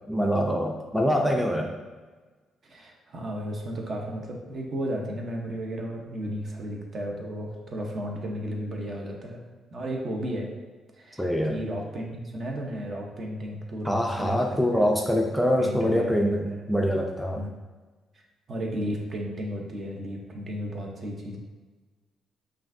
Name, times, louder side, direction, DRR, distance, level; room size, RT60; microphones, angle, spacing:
voice 1, 0.1-1.7 11.2-11.6 13.9-17.5, equal, 5° left, 0 dB, 0.4 m, -24 dB
voice 2, 2.6-9.4 9.7-10.5 10.9-14.4 15.1-15.3 15.6-16.2 16.5-16.7 17.3-17.5 18.1-18.2 18.5-21.4, equal, 45° right, 0 dB, 0.8 m, -34 dB
5.5 x 2.5 x 2.6 m, 1.3 s
cardioid pair, 90°, 0 cm